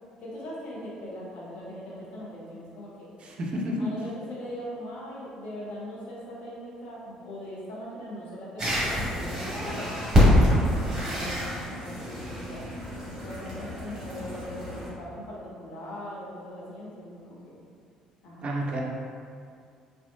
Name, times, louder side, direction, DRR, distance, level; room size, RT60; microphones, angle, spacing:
voice 1, 0.2-3.1 3.8-9.9 10.3-12.6 13.2-17.6 18.2-18.4, equal, 55° left, -6 dB, 0.8 m, -40 dB
voice 2, 3.2-3.9 18.4-18.8, equal, 40° right, -2 dB, 0.5 m, -30 dB
sound 1, 8.6-14.9, left 1 dB, 20° right, 1.2 m, -26 dB
3.4 x 2.6 x 2.4 m, 2.3 s
figure-of-eight pair, 50°, 3 cm